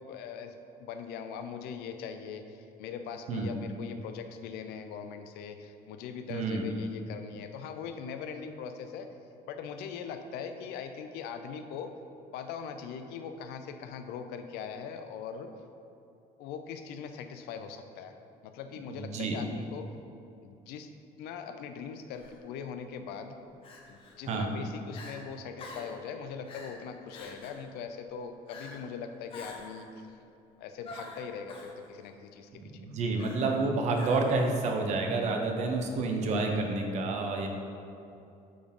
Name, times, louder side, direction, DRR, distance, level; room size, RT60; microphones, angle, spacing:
voice 1, 0.0-9.1 9.5-11.9 12.3-15.5 16.4-18.1 18.4-19.9 20.4-20.9 21.2-23.4 23.9-30.1 30.6-32.6, left 6 dB, 85° left, 8 dB, 0.5 m, -41 dB
voice 2, 6.3-6.7 18.9-19.4 24.3-24.5 32.5-37.5, right 3 dB, 45° right, 3 dB, 0.7 m, -29 dB
Crying sobbing, 22.1-22.4 23.6-24.2 24.6-24.7 24.9-25.2 25.6-26.0 26.5-26.8 27.1-27.6 28.5-28.9 29.3-29.8 30.8-31.7 33.2-33.6 33.9-34.5, left 2 dB, 35° left, 0.8 m, -46 dB
8.5 x 3.9 x 3.6 m, 2.7 s
cardioid pair, 170°, 16 cm